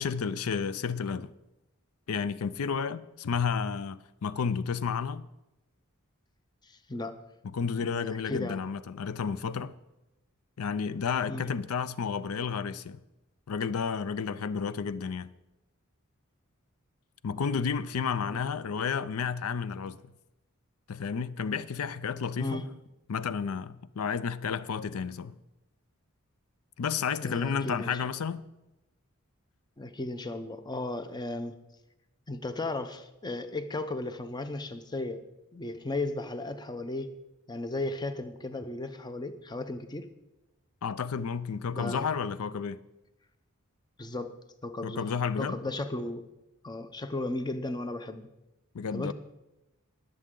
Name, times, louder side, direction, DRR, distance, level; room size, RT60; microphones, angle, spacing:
voice 1, 0.0-1.3 2.1-5.3 7.5-9.7 10.6-13.0 13.5-15.3 17.2-20.0 20.9-22.6 23.1-25.4 26.8-28.5 40.8-42.8 44.8-45.6 48.7-49.1, left 6 dB, 85° left, 0.5 m, -31 dB
voice 2, 6.6-7.2 7.8-8.7 11.3-11.5 18.2-18.4 22.4-22.7 27.2-27.9 29.8-31.6 32.3-35.2 35.5-37.1 37.5-40.1 41.7-42.1 44.0-45.0 45.4-46.2 46.6-48.3 48.9-49.1, left 2 dB, 20° left, 0.7 m, -35 dB
21.0 x 7.7 x 3.8 m
head